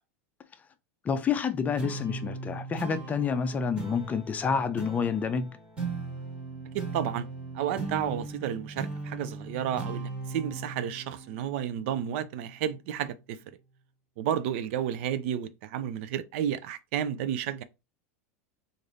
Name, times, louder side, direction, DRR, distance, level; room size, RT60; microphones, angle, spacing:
voice 1, 1.0-5.5, left 6 dB, 20° left, 0.5 m, -28 dB
sound 1, 1.8-12.6, right 3 dB, 15° right, 1.6 m, -38 dB
voice 2, 6.7-7.3 7.5-13.4 14.2-17.6, right 9 dB, 65° right, 0.5 m, -31 dB
3.2 x 2.5 x 3.9 m
supercardioid pair, 130°, 7 cm